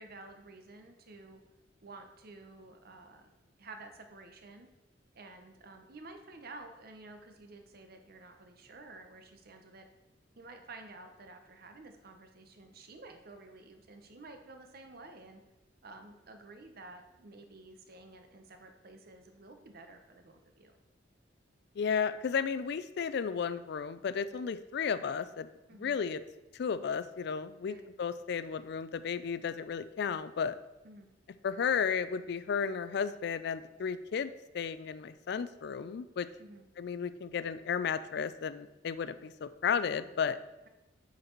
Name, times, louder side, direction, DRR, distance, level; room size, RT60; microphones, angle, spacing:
voice 1, 0.0-1.4 1.8-3.3 3.6-4.7 5.1-9.9 10.4-15.4 15.8-20.7 25.7-26.0 27.7-27.9 30.8-31.1 36.4-36.7, right 2 dB, 55° right, 6 dB, 0.8 m, -51 dB
voice 2, 21.8-25.5 25.8-26.2 26.5-30.5 31.4-36.3 36.8-40.4, left 6 dB, 65° left, 14 dB, 0.4 m, -33 dB
7.7 x 4.1 x 4.4 m, 0.99 s
head